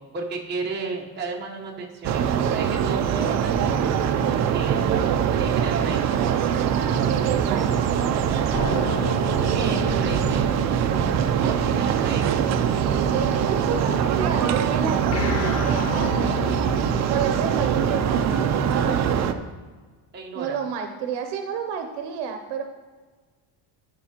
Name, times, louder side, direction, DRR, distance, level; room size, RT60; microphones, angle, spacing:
voice 1, 0.0-3.8 4.5-5.1 5.4-6.0 9.5-11.0 11.3-12.3 20.1-20.6, right 3 dB, 25° right, -2 dB, 1.0 m, -33 dB
sound 1, 2.0-19.3, right 8 dB, 40° right, 0.4 m, -23 dB
voice 2, 6.6-9.2 11.3-12.0 13.0-16.2 17.0-19.5 20.3-22.6, right 6 dB, 75° right, 5 dB, 0.7 m, -31 dB
sound 2, 8.5-13.8 15.1-19.0, left 4 dB, 35° left, 0.7 m, -34 dB
sound 3, 13.2-13.8 14.7-18.9, right 2 dB, ahead, 0.6 m, -43 dB
12.0 x 5.7 x 2.9 m, 1.4 s
cardioid pair, 165°, 43 cm